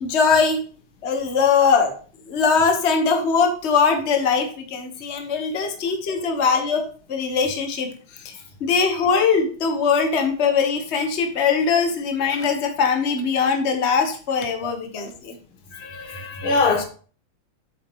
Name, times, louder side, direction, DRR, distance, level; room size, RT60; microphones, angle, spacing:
voice 1, 0.0-0.6 1.0-1.9 2.3-6.8 7.1-7.9 8.2-8.3 8.6-15.4, left 5 dB, 35° left, 1.4 m, -21 dB
voice 2, 15.7-16.8, left 3 dB, 75° left, 2.1 m, -23 dB
8.6 x 6.9 x 3.1 m
omnidirectional pair, 2.3 m